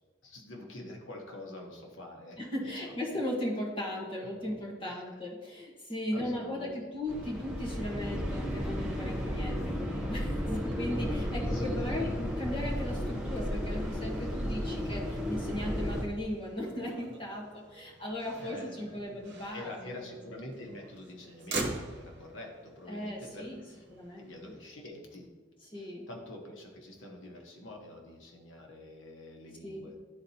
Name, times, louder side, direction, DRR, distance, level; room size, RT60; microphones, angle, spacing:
voice 1, 0.2-2.9 4.1-4.3 4.9-5.0 6.1-6.9 11.5-11.8 18.4-19.0 19.5-23.8 24.2-25.3 25.7-29.9, left 1 dB, 90° left, 1 dB, 1.1 m, -46 dB
voice 2, 2.4-20.0 22.9-23.6 23.9-24.3 25.7-26.1 29.6-29.9, left 1 dB, 25° left, -4 dB, 1.3 m, -37 dB
sound 1, 7.1-16.0, equal, 5° right, 0.7 m, -33 dB
Motor vehicle (road), 8.7-24.5, right 2 dB, 60° right, 0.9 m, -46 dB
11.5 x 4.0 x 2.8 m, 1.3 s
head